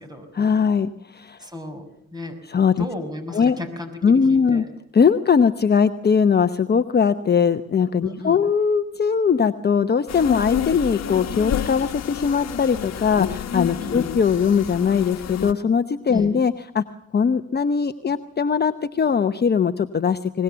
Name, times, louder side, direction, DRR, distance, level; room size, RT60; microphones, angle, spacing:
voice 1, 0.3-1.4 2.5-2.8 3.3-3.6 4.0-4.6 4.9-16.8 17.1-20.4, left 6 dB, 35° left, 9 dB, 1.0 m, -20 dB
voice 2, 1.4-1.9 2.1-2.4 2.8-4.7 8.0-8.4 13.8-14.2 16.1-16.3, left 2 dB, 15° right, 8 dB, 6.1 m, -34 dB
sound 1, 10.1-15.5, left 9 dB, 60° left, 1.5 m, -29 dB
23.5 x 20.5 x 7.0 m, 0.73 s
cardioid pair, 90°, 30 cm